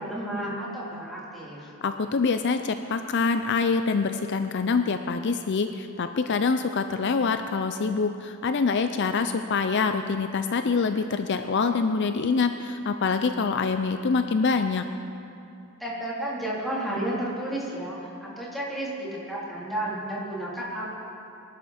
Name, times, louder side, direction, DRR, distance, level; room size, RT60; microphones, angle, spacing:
voice 1, 0.0-1.7 15.8-20.8, right 1 dB, ahead, -7 dB, 3.4 m, -32 dB
voice 2, 1.8-14.8, left 4 dB, 50° left, 8 dB, 0.5 m, -25 dB
24.0 x 11.5 x 4.3 m, 2.6 s
head